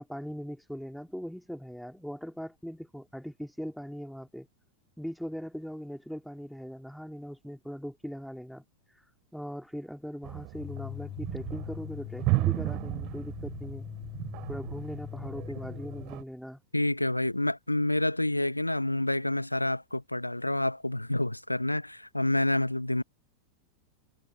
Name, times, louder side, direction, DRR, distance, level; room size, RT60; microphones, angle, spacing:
voice 1, 0.0-4.5 5.0-13.9 14.5-16.6, equal, ahead, 3.5 m, -40 dB
sound 1, 10.2-16.2, right 25 dB, 40° right, 2.7 m, -34 dB
sound 2, 10.5-16.1, left 14 dB, 35° left, 5.4 m, -41 dB
voice 2, 16.7-23.0, left 1 dB, 85° left, 1.0 m, -28 dB
figure-of-eight pair, 90°, 0 cm